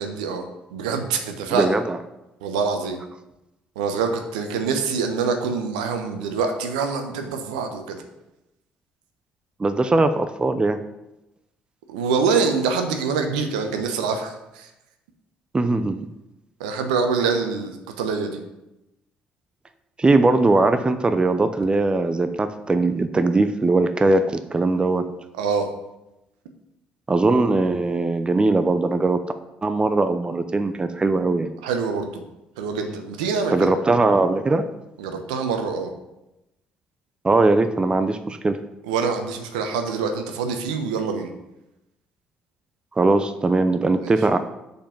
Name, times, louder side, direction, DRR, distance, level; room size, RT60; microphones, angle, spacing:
voice 1, 0.0-1.8 2.4-3.0 3.8-8.0 11.9-14.7 16.6-18.4 25.4-25.7 31.6-32.2 32.6-33.7 35.0-35.9 38.8-41.3, right 5 dB, 80° right, 5 dB, 0.9 m, -25 dB
voice 2, 1.5-2.0 9.6-10.8 15.5-16.1 20.0-25.0 27.1-29.2 29.6-31.5 33.5-34.6 37.2-38.6 43.0-44.4, right 2 dB, 25° right, 9 dB, 0.7 m, -20 dB
6.7 x 5.4 x 5.7 m, 0.94 s
hypercardioid pair, 50°, 4 cm